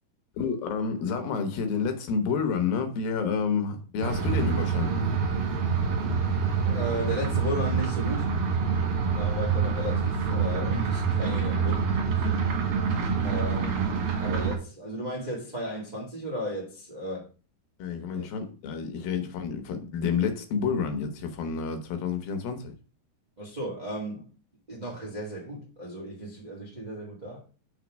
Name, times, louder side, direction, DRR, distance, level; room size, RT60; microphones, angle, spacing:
voice 1, 0.3-5.1 8.7-9.0 12.4-12.6 17.8-22.8, left 6 dB, 75° left, 2.6 m, -29 dB
sound 1, 4.0-14.6, right 5 dB, 60° right, 2.7 m, -26 dB
voice 2, 6.6-8.3 9.1-11.9 13.2-17.3 18.1-18.3 23.4-24.3 24.7-27.4, equal, 80° right, 0.4 m, -35 dB
6.2 x 3.7 x 6.1 m
omnidirectional pair, 4.6 m